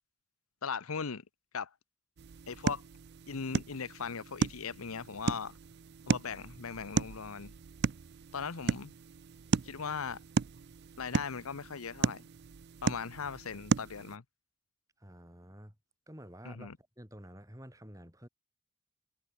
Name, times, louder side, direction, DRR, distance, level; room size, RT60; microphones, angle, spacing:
voice 1, 0.6-1.2 1.5-1.7 2.5-2.8 3.3-5.5 6.1-7.5 8.3-8.9 9.6-10.2 11.0-12.2 12.8-14.2 16.4-16.8, left 5 dB, 90° left, 0.9 m, -38 dB
sound 1, 2.2-14.2, right 5 dB, 50° right, 0.4 m, -35 dB
voice 2, 15.0-15.8 16.1-18.3, equal, 15° right, 6.9 m, -50 dB
head